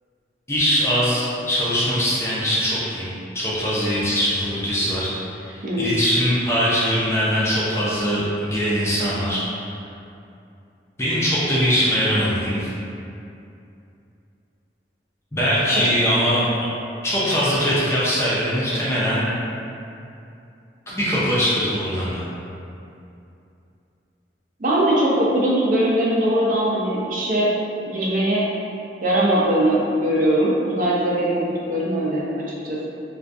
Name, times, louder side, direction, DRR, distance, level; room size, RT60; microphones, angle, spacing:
voice 1, 0.5-3.1 3.3-9.7 11.0-12.7 15.3-16.5 17.0-19.3 20.9-22.2, equal, 15° left, -8 dB, 0.4 m, -22 dB
voice 2, 5.6-5.9 24.6-27.5 27.9-28.5 29.0-31.4 31.7-32.9, right 1 dB, 45° right, -5 dB, 0.4 m, -20 dB
2.3 x 2.2 x 2.5 m, 2.6 s
head